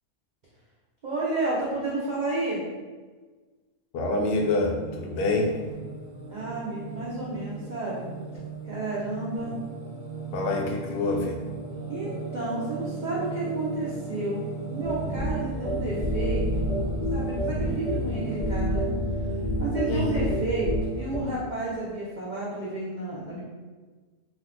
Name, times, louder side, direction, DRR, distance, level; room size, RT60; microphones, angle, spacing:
voice 1, 1.0-2.6 6.3-8.2 8.6-9.5 11.9-14.4 14.7-16.8 17.1-18.9 19.6-23.4, right 2 dB, 85° right, -6 dB, 0.4 m, -31 dB
voice 2, 3.9-5.6 10.3-11.4 19.9-20.2, left 2 dB, 90° left, 1 dB, 1.1 m, -26 dB
Singing, 4.3-21.3, right 3 dB, 35° right, 0.8 m, -38 dB
sound 1, 14.8-21.2, equal, 60° left, 0.5 m, -28 dB
2.7 x 2.4 x 3.5 m, 1.4 s
omnidirectional pair, 1.6 m